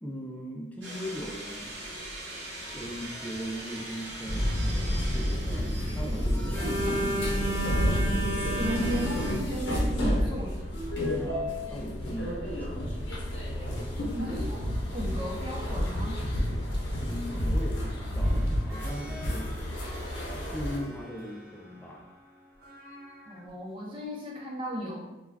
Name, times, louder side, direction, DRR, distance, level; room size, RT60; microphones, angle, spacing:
voice 1, 0.0-1.8 2.7-6.9 11.0-13.2 17.0-19.5 20.3-22.1, equal, 10° left, -1 dB, 0.4 m, -39 dB
sound 1, 0.8-9.3, right 1 dB, 85° right, 0.9 m, -33 dB
sound 2, 4.3-20.8, equal, 90° left, 0.6 m, -30 dB
voice 2, 6.6-7.2 8.6-10.7 14.1-14.6 14.9-16.2 23.3-25.0, equal, 30° right, -4 dB, 0.6 m, -35 dB
sound 3, 18.2-23.5 24.0-24.1, left 1 dB, 55° right, 0.9 m, -48 dB
2.3 x 2.2 x 3.3 m, 0.97 s
head